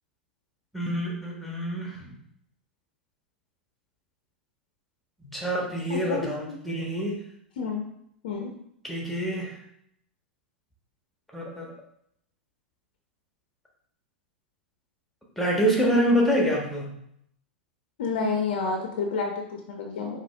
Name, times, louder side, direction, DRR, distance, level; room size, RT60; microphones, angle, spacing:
voice 1, 0.7-2.1 5.2-7.2 8.8-9.6 11.3-11.7 15.4-16.9, equal, ahead, -2 dB, 1.3 m, -26 dB
voice 2, 18.0-20.2, left 4 dB, 60° left, 2 dB, 0.7 m, -29 dB
5.1 x 3.0 x 3.4 m, 0.73 s
figure-of-eight pair, 95°, 6 cm